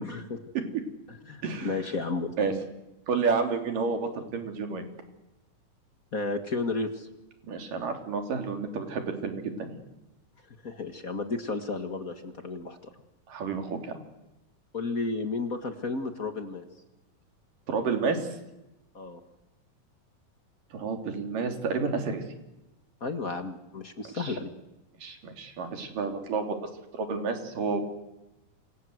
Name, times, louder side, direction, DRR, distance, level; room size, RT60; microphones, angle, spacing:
voice 1, 0.0-0.4 1.1-2.3 6.1-7.1 10.6-12.8 14.7-16.6 18.9-19.2 23.0-24.5, left 3 dB, 40° left, 7 dB, 1.4 m, -32 dB
voice 2, 1.4-1.8 2.4-2.5 3.1-4.8 7.4-9.8 13.3-14.0 17.7-18.2 20.7-22.2 24.2-24.4 25.0-26.6 26.9-27.8, right 4 dB, 70° right, 4 dB, 4.7 m, -30 dB
28.0 x 25.5 x 8.0 m, 0.96 s
omnidirectional pair, 4.0 m